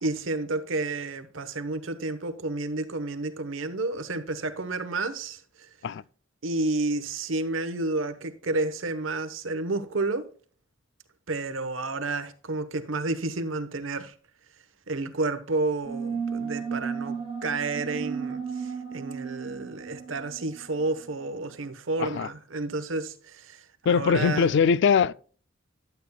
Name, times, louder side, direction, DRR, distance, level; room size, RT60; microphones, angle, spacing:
voice 1, 0.0-5.4 6.4-10.3 11.3-14.1 14.9-24.6, right 2 dB, 80° right, 1.0 m, -30 dB
sound 1, 15.8-21.0, right 6 dB, 30° right, 1.4 m, -34 dB
voice 2, 22.0-22.3 23.9-25.1, left 6 dB, 60° left, 0.3 m, -22 dB
12.0 x 8.1 x 2.3 m
head